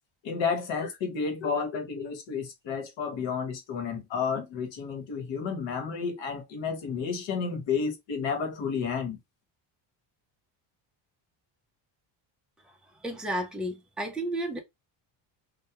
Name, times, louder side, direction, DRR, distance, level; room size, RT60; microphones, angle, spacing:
voice 1, 0.2-9.2, left 5 dB, 70° left, 1.0 m, -31 dB
voice 2, 13.0-14.6, right 1 dB, ahead, 0.4 m, -32 dB
2.2 x 2.2 x 2.7 m
cardioid pair, 135°, 47 cm